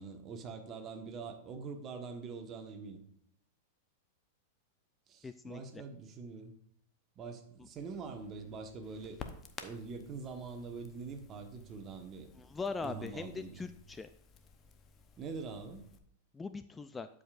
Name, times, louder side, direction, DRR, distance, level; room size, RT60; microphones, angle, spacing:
voice 1, 0.0-3.0 5.1-6.5 7.2-9.2 9.6-12.3 12.8-13.7 15.2-15.9, right 4 dB, 35° right, 6 dB, 1.2 m, -44 dB
voice 2, 5.2-5.8 12.4-14.1 16.3-17.1, left 4 dB, 15° left, 11 dB, 0.3 m, -41 dB
Crackle, 7.8-16.0, left 6 dB, 30° left, 0.8 m, -54 dB
11.5 x 5.1 x 2.5 m, 0.74 s
hypercardioid pair, 115°, 0 cm